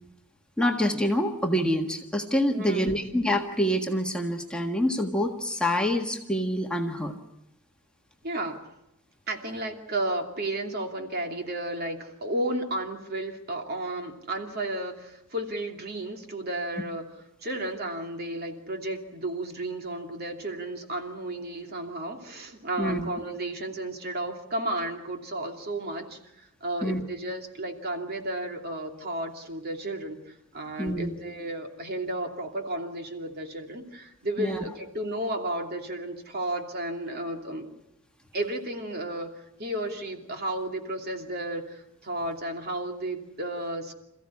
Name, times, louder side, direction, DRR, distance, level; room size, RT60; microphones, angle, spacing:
voice 1, 0.6-7.1 22.8-23.1 26.8-27.0 30.8-31.2 34.4-34.6, equal, 5° left, 2 dB, 1.6 m, -26 dB
voice 2, 2.5-3.0 8.2-8.7 9.3-17.0 17.4-37.7 38.3-43.9, right 1 dB, 45° right, 3 dB, 2.8 m, -33 dB
27.5 x 15.0 x 9.8 m, 0.89 s
head